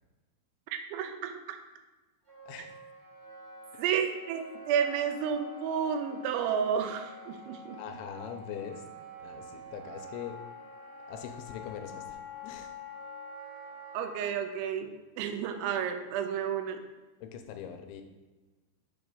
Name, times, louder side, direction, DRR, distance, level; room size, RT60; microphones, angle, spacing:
voice 1, 0.7-1.6 3.8-7.8 13.9-16.8, right 8 dB, 85° right, 7 dB, 3.0 m, -31 dB
Wind instrument woodwind instrument, 2.3-14.3, left 2 dB, 45° right, 0.7 m, -47 dB
voice 2, 7.8-8.8 9.2-10.4 11.1-12.7 17.2-18.0, left 8 dB, 90° left, 6 dB, 3.0 m, -42 dB
7.3 x 3.1 x 5.3 m, 1.2 s
omnidirectional pair, 5.3 m